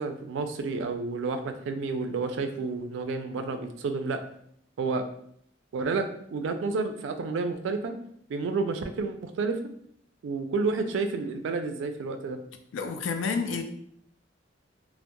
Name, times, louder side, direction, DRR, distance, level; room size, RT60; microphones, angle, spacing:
voice 1, 0.0-4.2 4.8-5.0 5.7-7.9 8.3-9.6 10.2-12.4, right 4 dB, 75° right, 0.3 m, -30 dB
voice 2, 12.7-13.6, left 5 dB, 85° left, 0.3 m, -29 dB
2.1 x 2.0 x 2.8 m
head